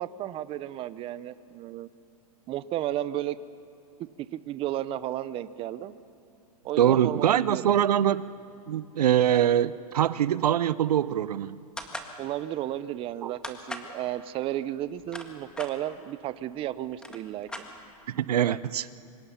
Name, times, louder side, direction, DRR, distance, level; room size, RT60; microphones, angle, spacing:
voice 1, 0.0-1.9 2.5-3.4 4.3-5.9 6.6-7.8 12.2-17.5, right 13 dB, 30° right, 15 dB, 0.7 m, -33 dB
voice 2, 6.8-8.3 8.7-11.6 13.2-13.3 18.1-18.9, right 10 dB, 85° right, 18 dB, 0.6 m, -23 dB
sound 1, 11.8-12.1 13.4-13.9 14.8-15.7 16.6-16.7 16.9-18.1, left 1 dB, 5° left, 1.7 m, -39 dB
25.0 x 20.5 x 5.8 m, 2.7 s
hypercardioid pair, 125°, 19 cm